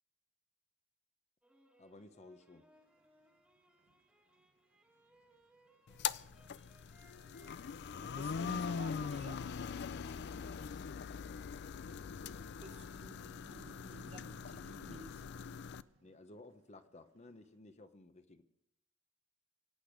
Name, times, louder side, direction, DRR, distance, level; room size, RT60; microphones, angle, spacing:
sound 1, 1.4-7.7, right 1 dB, 5° right, 1.5 m, -68 dB
voice 1, 1.8-2.7 10.3-10.6 16.0-18.4, left 2 dB, 35° left, 0.9 m, -56 dB
sound 2, 2.7-17.6, right 2 dB, 70° right, 1.6 m, -67 dB
sound 3, 5.9-15.8, left 6 dB, 60° left, 0.4 m, -42 dB
voice 2, 8.0-9.5 12.6-15.5, right 2 dB, 30° right, 0.9 m, -55 dB
24.0 x 8.5 x 5.1 m
head